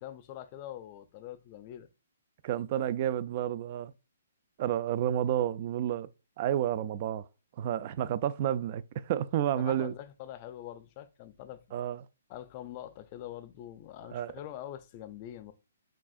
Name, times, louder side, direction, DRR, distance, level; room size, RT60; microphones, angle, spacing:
voice 1, 0.0-1.9 9.6-11.6 12.3-15.5, left 12 dB, 35° left, 0.5 m, -44 dB
voice 2, 2.4-3.9 4.6-6.1 6.4-7.2 7.6-9.9 11.7-12.0 14.1-14.3, right 11 dB, 40° right, 0.3 m, -30 dB
6.0 x 2.4 x 2.4 m
hypercardioid pair, 145°, 0 cm